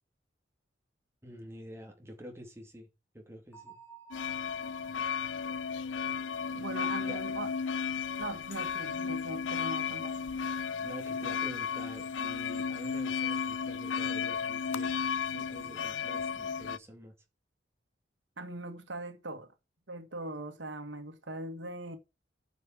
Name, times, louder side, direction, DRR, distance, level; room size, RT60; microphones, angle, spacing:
voice 1, 1.2-2.9 3.1-3.8 7.0-7.2 10.8-14.9 15.3-17.2, equal, 15° right, 2.6 m, -47 dB
Bell, 3.5-7.2, right 7 dB, 10° left, 3.6 m, -57 dB
sound 1, 4.1-16.8, left 6 dB, 85° left, 0.6 m, -34 dB
voice 2, 6.5-7.5 8.2-10.3 18.4-19.5 19.9-22.0, right 2 dB, 80° right, 2.0 m, -40 dB
9.3 x 5.4 x 7.4 m
head